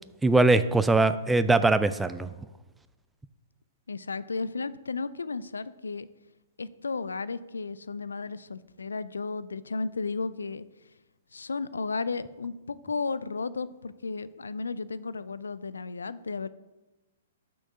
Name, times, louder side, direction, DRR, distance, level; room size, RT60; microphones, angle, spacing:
voice 1, 0.2-2.3, right 2 dB, 5° right, 13 dB, 0.3 m, -21 dB
voice 2, 3.9-6.1 6.6-10.7 11.3-16.5, left 4 dB, 80° left, 17 dB, 0.3 m, -34 dB
6.2 x 4.4 x 5.4 m, 1.1 s
figure-of-eight pair, 115°, 0 cm